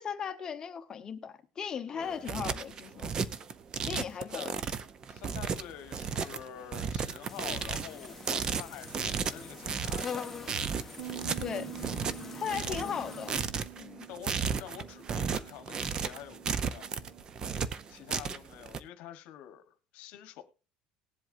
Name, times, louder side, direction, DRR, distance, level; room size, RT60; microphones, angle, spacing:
voice 1, 0.0-3.1 3.9-4.5 11.4-11.7 12.3-13.4 13.8-14.1, left 7 dB, 25° left, 1.1 m, -37 dB
voice 2, 1.9-2.3 4.1-4.6 5.1-10.5 12.7-13.0 14.1-17.0 17.9-20.4, left 11 dB, 60° left, 1.2 m, -47 dB
sound 1, 2.0-18.8, right 6 dB, 25° right, 0.6 m, -34 dB
sound 2, 7.3-13.4, left 5 dB, 10° left, 1.4 m, -43 dB
Bass guitar, 11.0-17.2, right 15 dB, 65° right, 5.4 m, -47 dB
19.5 x 7.8 x 2.7 m
cardioid pair, 155°, 3 cm